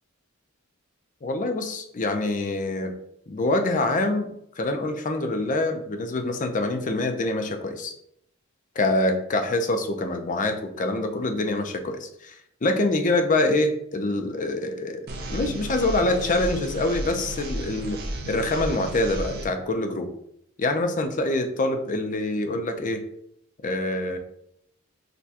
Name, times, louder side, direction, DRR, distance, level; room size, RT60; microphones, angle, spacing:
voice 1, 1.2-2.9 3.3-7.9 8.8-15.0 15.3-18.0 18.3-20.1 20.6-23.0 23.6-24.2, left 2 dB, 35° left, 6 dB, 0.5 m, -25 dB
sound 1, 15.1-19.5, right 1 dB, 50° right, 0.6 m, -33 dB
6.6 x 2.2 x 2.8 m, 0.73 s
head